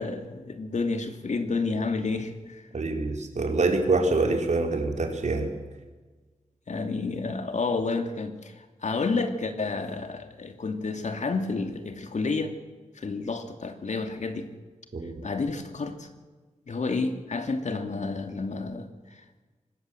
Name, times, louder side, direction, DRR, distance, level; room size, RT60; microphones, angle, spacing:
voice 1, 0.0-2.6 6.7-12.5 12.9-14.5 15.2-16.1 16.7-19.4, left 3 dB, 65° left, 7 dB, 2.7 m, -30 dB
voice 2, 2.7-5.5 14.9-15.1, right 3 dB, 65° right, 4 dB, 4.1 m, -25 dB
25.0 x 20.0 x 8.0 m, 1.3 s
wide cardioid pair, 100°, 13 cm